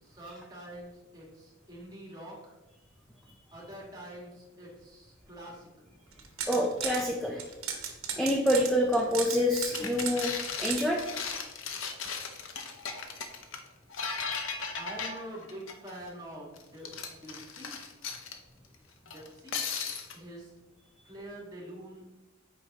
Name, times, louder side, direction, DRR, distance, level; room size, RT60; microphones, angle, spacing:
voice 1, 0.0-2.5 3.5-5.9 14.7-17.7 19.0-19.6 20.1-20.5 21.0-22.1, right 1 dB, 20° right, -2 dB, 1.6 m, -45 dB
sound 1, 6.1-7.0 7.4-10.8, right 7 dB, 80° right, 1.0 m, -35 dB
voice 2, 6.5-7.5 8.2-10.3 10.6-11.0, equal, ahead, -3 dB, 0.5 m, -27 dB
sound 2, 9.7-16.1 16.6-18.4 19.1-20.2, left 5 dB, 65° left, 0.7 m, -37 dB
8.2 x 4.9 x 2.8 m, 1.1 s
head